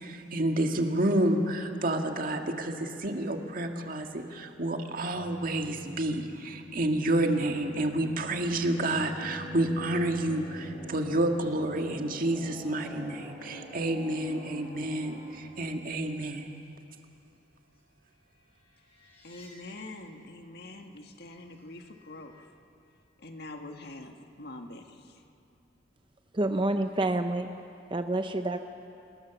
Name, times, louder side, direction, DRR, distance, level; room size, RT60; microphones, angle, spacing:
voice 1, 0.0-16.5, right 1 dB, 50° right, 1.8 m, -29 dB
sound 1, 5.1-15.7 18.9-19.5 22.0-22.4, left 1 dB, 30° left, 6.8 m, -46 dB
voice 2, 19.2-22.4 23.2-24.8, left 2 dB, 60° left, 1.7 m, -44 dB
voice 3, 26.3-27.5 27.9-28.7, right 2 dB, 25° right, 0.7 m, -28 dB
27.5 x 20.5 x 7.1 m
head